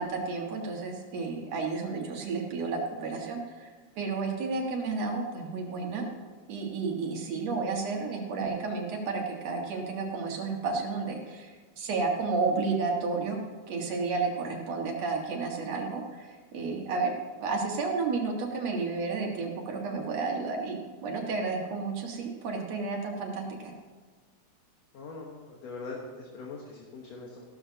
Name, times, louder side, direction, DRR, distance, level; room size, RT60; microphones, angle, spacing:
voice 1, 0.0-6.0 6.5-17.1 17.4-23.7, right 4 dB, 60° right, 1 dB, 2.7 m, -32 dB
voice 2, 24.9-27.4, left 3 dB, 65° left, -2 dB, 2.3 m, -42 dB
15.5 x 12.5 x 2.8 m, 1.5 s
omnidirectional pair, 3.5 m